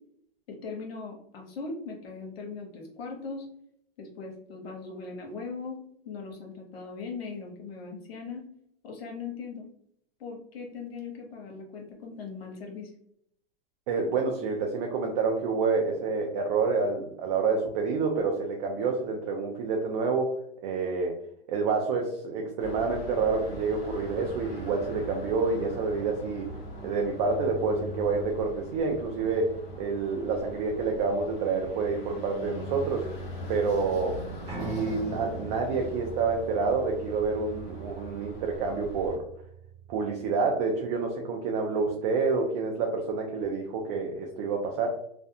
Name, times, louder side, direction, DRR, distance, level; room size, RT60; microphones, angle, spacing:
voice 1, 0.5-3.5 4.0-5.8 6.0-8.4 8.8-9.6 10.2-12.9, left 4 dB, 80° left, 1 dB, 0.9 m, -39 dB
voice 2, 13.9-20.3 20.6-21.2 21.5-26.5 26.8-29.5 29.8-33.1 33.5-34.2 34.6-39.2 39.9-44.9, right 4 dB, 45° right, 1 dB, 0.5 m, -28 dB
sound 1, 22.6-39.2, equal, 20° left, 0.7 m, -41 dB
Piano, 34.5-40.6, right 4 dB, 20° right, 0.9 m, -42 dB
2.5 x 2.2 x 2.6 m, 0.72 s
hypercardioid pair, 135°, 30 cm